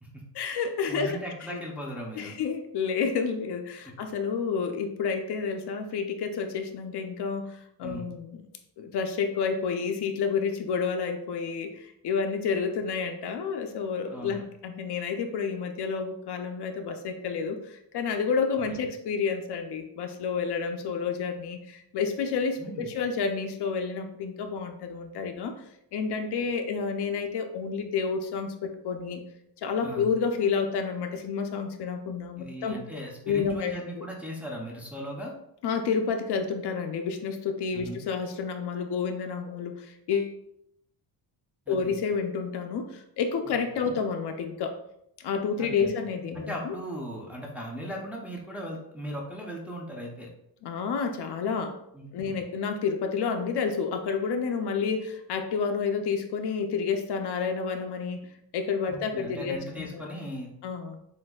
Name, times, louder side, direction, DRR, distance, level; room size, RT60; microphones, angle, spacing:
voice 1, 0.3-1.2 1.5-1.6 2.2-8.4 8.8-25.6 25.9-29.2 29.6-32.8 33.3-34.1 35.6-40.4 41.7-44.8 45.2-46.8 50.6-51.8 52.1-58.3 58.5-60.0 60.6-61.0, left 5 dB, 60° left, 6 dB, 0.6 m, -30 dB
voice 2, 0.9-2.3 3.8-3.9 7.8-8.1 14.1-14.4 18.7-18.9 22.6-22.9 29.8-30.1 32.4-35.3 37.7-38.0 41.7-42.0 43.5-44.0 45.6-46.0 46.3-50.3 51.9-52.4 58.9-60.5, equal, 5° right, -3 dB, 0.5 m, -38 dB
7.6 x 2.6 x 2.3 m, 0.77 s
cardioid pair, 170°, 46 cm